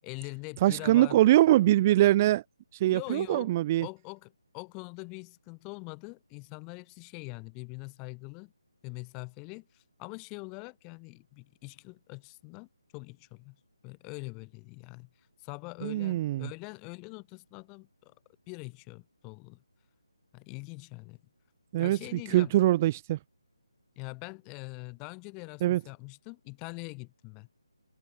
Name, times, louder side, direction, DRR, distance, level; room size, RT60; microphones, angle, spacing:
voice 1, 0.0-1.2 2.9-3.5 3.8-8.5 8.8-13.6 13.8-15.1 15.4-18.1 18.5-19.6 20.3-21.2 21.8-22.5 24.0-27.5, left 32 dB, 15° left, 6.4 m, -43 dB
voice 2, 0.6-2.4 2.7-3.9 15.8-16.5 21.7-23.2 25.6-25.8, right 15 dB, 25° right, 2.4 m, -23 dB
figure-of-eight pair, 150°, 3 cm